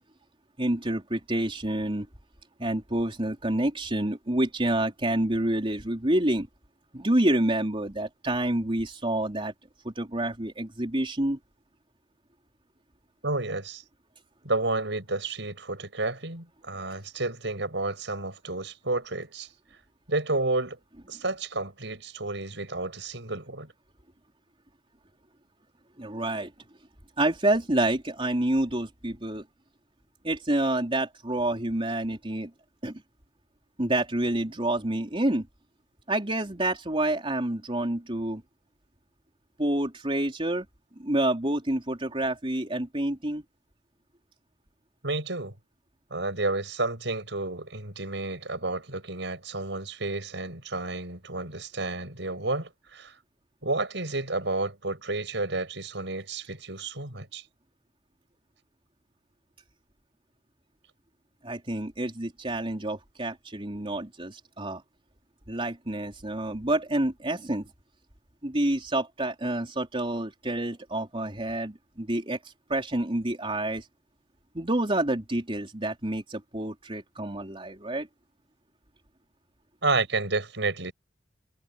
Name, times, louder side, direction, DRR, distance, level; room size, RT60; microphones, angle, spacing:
voice 1, 0.6-2.1 2.6-6.5 6.9-9.5 9.8-11.4 26.0-26.5 27.2-29.4 30.2-32.5 32.8-33.0 33.8-35.5 36.1-38.4 39.6-40.7 41.0-43.4 61.4-64.8 65.5-67.7 68.4-73.9 74.5-78.1, right 1 dB, 30° right, 3.8 m, -28 dB
voice 2, 13.2-13.8 14.4-19.5 20.1-20.8 21.1-23.7 45.0-45.5 46.1-53.2 53.6-57.4 79.8-80.9, right 2 dB, 70° right, 7.8 m, -31 dB
head